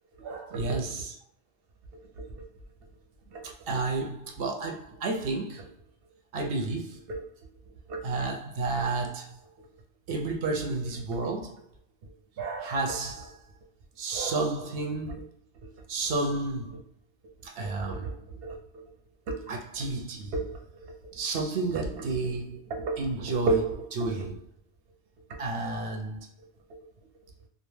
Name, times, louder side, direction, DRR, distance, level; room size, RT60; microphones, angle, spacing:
voice 1, 0.2-1.1 1.9-2.4 3.3-5.7 6.3-7.3 7.9-9.4 10.1-11.6 12.0-13.4 14.0-15.3 15.6-16.8 17.4-18.8 19.3-24.4 25.3-26.8, right 3 dB, 65° right, 0.8 m, -31 dB
2.4 x 2.2 x 3.1 m
omnidirectional pair, 1.1 m